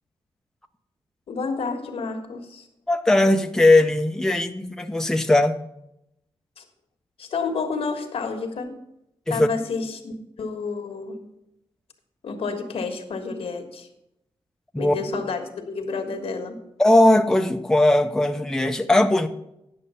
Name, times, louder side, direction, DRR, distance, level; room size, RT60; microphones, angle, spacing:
voice 1, 1.3-2.7 6.6-6.7 7.2-8.7 9.3-11.2 12.2-13.9 14.8-16.6, left 4 dB, 80° left, 1.4 m, -30 dB
voice 2, 2.9-5.6 9.3-9.5 14.7-14.9 16.8-19.3, left 1 dB, 5° left, 0.6 m, -19 dB
10.0 x 6.5 x 5.5 m
wide cardioid pair, 110°, 10 cm